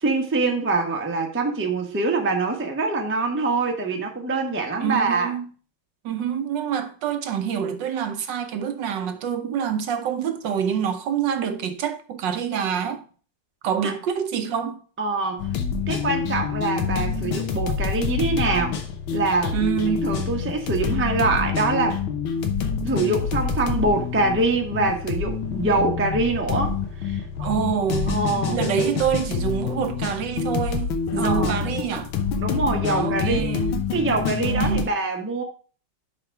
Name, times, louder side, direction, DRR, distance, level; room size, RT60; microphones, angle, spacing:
voice 1, 0.0-5.3 13.8-13.9 15.0-15.5 15.9-18.8 19.1-19.6 20.0-22.0 22.8-26.8 27.0-27.2 28.1-28.6 31.2-31.6 32.4-33.5 33.9-35.4, right 3 dB, 10° right, 0.6 m, -24 dB
voice 2, 4.8-5.5 6.0-13.0 13.6-14.8 19.5-20.0 27.4-28.2 28.5-32.1 32.9-33.8 34.4-34.9, right 8 dB, 70° right, 1.3 m, -26 dB
sound 1, 15.4-34.8, left 6 dB, 85° left, 1.8 m, -27 dB
5.9 x 5.3 x 4.5 m
omnidirectional pair, 2.2 m